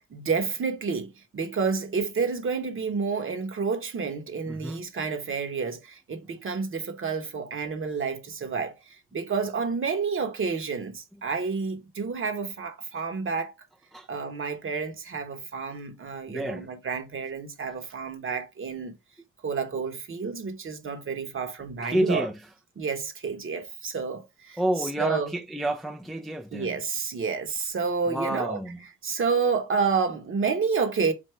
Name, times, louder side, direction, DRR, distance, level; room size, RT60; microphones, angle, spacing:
voice 1, 0.1-13.5 14.1-18.9 19.4-22.3 22.8-25.3 26.5-28.6 29.0-31.1, right 5 dB, 45° right, 1.2 m, -29 dB
voice 2, 4.5-4.8 13.9-14.1 16.3-16.7 21.8-22.4 24.6-26.8 28.1-28.8, right 1 dB, ahead, 0.5 m, -29 dB
5.2 x 2.6 x 3.3 m
cardioid pair, 90°, 30 cm